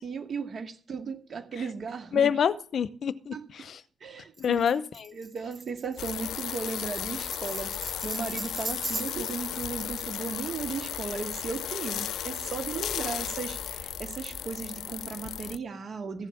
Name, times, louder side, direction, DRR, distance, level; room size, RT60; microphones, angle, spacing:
voice 1, 0.0-2.3 3.3-3.4 4.0-4.6 5.1-16.3, right 5 dB, 45° right, 6 dB, 2.1 m, -36 dB
voice 2, 2.1-3.8 4.4-5.1, left 8 dB, 55° left, 15 dB, 0.8 m, -27 dB
Tambourine, 4.4-9.4, right 3 dB, 20° right, 1.4 m, -39 dB
sound 1, 6.0-15.6, left 11 dB, 85° left, 0.5 m, -35 dB
sound 2, 6.9-14.4, right 2 dB, 65° right, 5.5 m, -50 dB
15.0 x 7.4 x 7.3 m, 0.42 s
wide cardioid pair, 155°, 0 cm